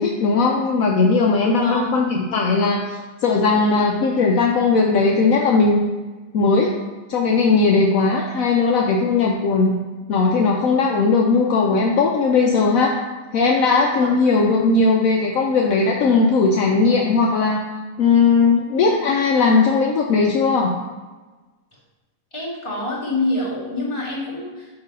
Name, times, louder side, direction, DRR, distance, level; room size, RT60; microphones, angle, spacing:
voice 1, 0.0-5.8 6.3-6.7 7.1-9.8 10.1-12.9 13.3-17.6 18.0-20.8, left 4 dB, 70° left, 0 dB, 1.1 m, -18 dB
voice 2, 1.6-1.9 13.9-14.1 22.3-24.7, left 1 dB, 20° left, -8 dB, 2.2 m, -26 dB
5.9 x 4.7 x 5.3 m, 1.2 s
omnidirectional pair, 1.6 m